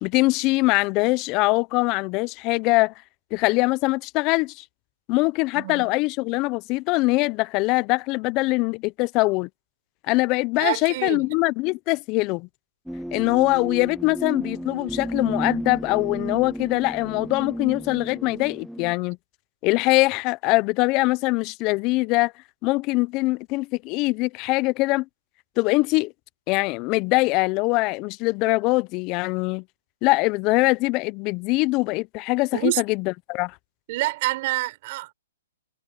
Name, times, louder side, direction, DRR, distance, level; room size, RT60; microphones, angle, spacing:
voice 1, 0.0-2.9 3.3-4.6 5.1-9.5 10.1-12.5 13.1-19.2 19.6-22.3 22.6-25.0 25.6-26.1 26.5-29.6 30.0-33.5, left 23 dB, 30° left, 0.6 m, -23 dB
voice 2, 5.5-5.9 10.6-11.4 32.5-32.8 33.9-35.1, right 19 dB, 45° right, 6.3 m, -27 dB
sound 1, 12.9-18.9, equal, ahead, 0.7 m, -33 dB
hypercardioid pair, 140°, 0 cm